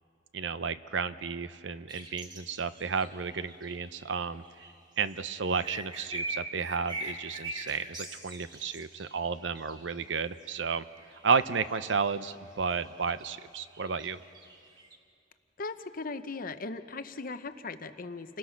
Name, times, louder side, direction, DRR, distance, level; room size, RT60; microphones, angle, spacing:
voice 1, 0.3-4.4 5.0-10.9 11.2-14.2, right 5 dB, 75° right, 13 dB, 0.7 m, -32 dB
sound 1, 1.9-5.1 5.5-10.2 10.4-15.0, right 2 dB, 25° right, 2.0 m, -43 dB
voice 2, 15.6-18.4, left 3 dB, 50° left, 10 dB, 0.9 m, -38 dB
29.5 x 19.5 x 5.8 m, 2.4 s
head